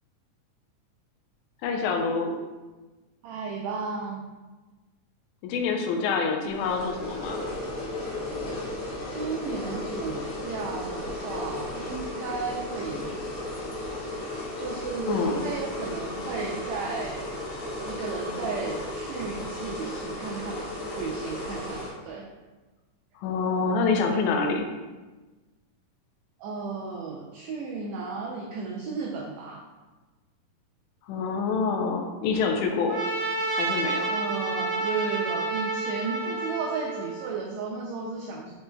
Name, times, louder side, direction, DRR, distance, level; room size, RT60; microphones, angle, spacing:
voice 1, 1.6-2.4 5.4-7.4 15.1-15.4 23.2-24.7 31.1-33.0 33.5-34.1, left 4 dB, 80° left, 2 dB, 2.0 m, -26 dB
voice 2, 3.2-4.3 9.1-13.3 14.6-17.3 17.8-22.2 26.4-29.6 34.1-38.5, right 4 dB, 90° right, -2 dB, 1.5 m, -34 dB
sound 1, 6.5-21.9, left 1 dB, 65° left, 1.4 m, -35 dB
Trumpet, 32.9-37.3, right 3 dB, 70° right, 1.4 m, -29 dB
5.1 x 4.4 x 2.2 m, 1.2 s
omnidirectional pair, 3.7 m